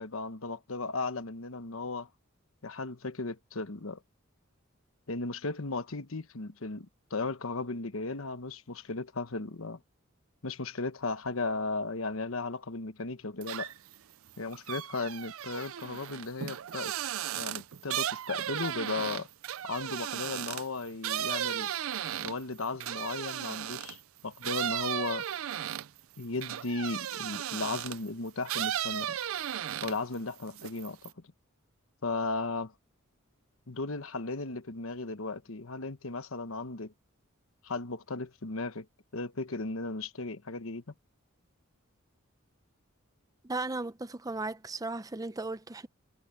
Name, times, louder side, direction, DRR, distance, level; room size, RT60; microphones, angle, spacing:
voice 1, 0.0-2.1 2.6-4.0 5.1-9.8 10.4-13.7 14.4-16.9 17.4-19.3 19.6-21.7 22.2-25.3 26.2-29.2 29.8-31.1 32.0-32.7 33.7-36.9 37.6-38.9 39.1-40.8, left 3 dB, 75° left, 1.2 m, -36 dB
sound 1, 13.4-13.9 14.3-24.0 24.4-28.1 28.4-30.1 30.5-31.1, right 11 dB, 80° right, 0.5 m, -35 dB
voice 2, 43.4-45.9, right 3 dB, 15° right, 0.6 m, -36 dB
head